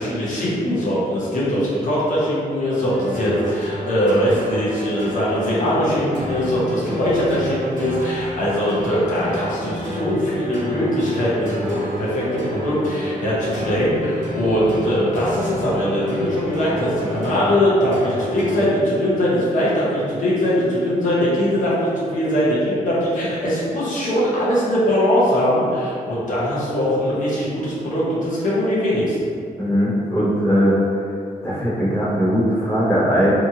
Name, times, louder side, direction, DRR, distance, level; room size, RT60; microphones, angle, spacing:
voice 1, 0.0-29.2, equal, 60° left, -8 dB, 0.8 m, -21 dB
sound 1, 2.8-18.6, equal, 60° right, 0.7 m, -30 dB
voice 2, 29.6-30.8 31.4-33.3, equal, 15° left, -10 dB, 0.7 m, -19 dB
2.8 x 2.5 x 2.7 m, 2.4 s
wide cardioid pair, 150°, 15 cm